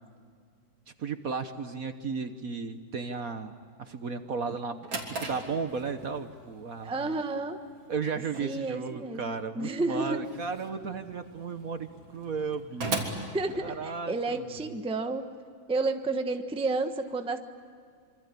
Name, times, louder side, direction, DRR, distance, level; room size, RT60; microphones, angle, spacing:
voice 1, 1.0-3.5 3.8-7.2 7.9-13.0 13.5-14.7, right 5 dB, 50° right, 9 dB, 1.3 m, -35 dB
Drawer open or close, 4.5-14.2, right 3 dB, 85° right, 4.1 m, -40 dB
voice 2, 6.8-7.6 8.4-10.2 13.3-15.2 15.7-17.4, right 3 dB, 5° right, 6 dB, 0.9 m, -31 dB
26.5 x 25.0 x 8.4 m, 2.2 s
omnidirectional pair, 2.1 m